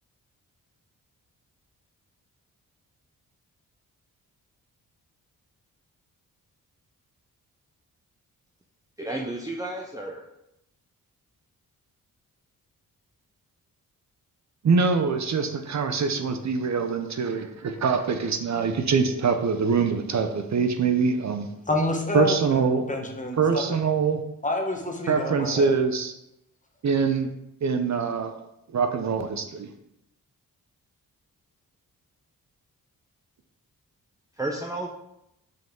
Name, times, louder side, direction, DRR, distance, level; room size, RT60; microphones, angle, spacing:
voice 1, 9.0-10.2 34.4-34.9, right 1 dB, 10° right, 1 dB, 0.7 m, -32 dB
voice 2, 14.6-21.5 22.1-22.9 23.4-24.2 25.1-26.1 26.8-27.3 27.6-28.3 28.7-29.7, right 5 dB, 50° right, 6 dB, 0.7 m, -24 dB
voice 3, 21.7-23.6 24.4-25.7, left 2 dB, 20° left, 2 dB, 1.2 m, -28 dB
5.7 x 5.3 x 3.7 m, 0.83 s
cardioid pair, 70°, 35 cm